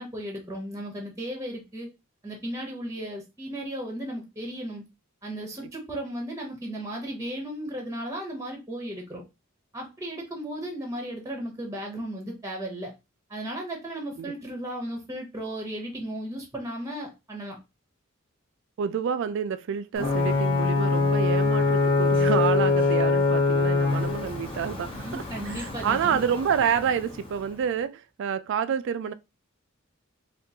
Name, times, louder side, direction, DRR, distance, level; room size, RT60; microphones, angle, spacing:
voice 1, 0.0-1.9 2.2-4.8 5.2-9.2 9.7-12.9 13.3-17.6 24.9-26.3, right 1 dB, 15° right, 0.8 m, -35 dB
voice 2, 18.8-29.1, right 7 dB, 60° right, 0.3 m, -28 dB
Ocean / Boat Water vehicle / Alarm, 20.0-27.5, left 3 dB, 25° left, 0.7 m, -24 dB
3.6 x 2.5 x 2.8 m
head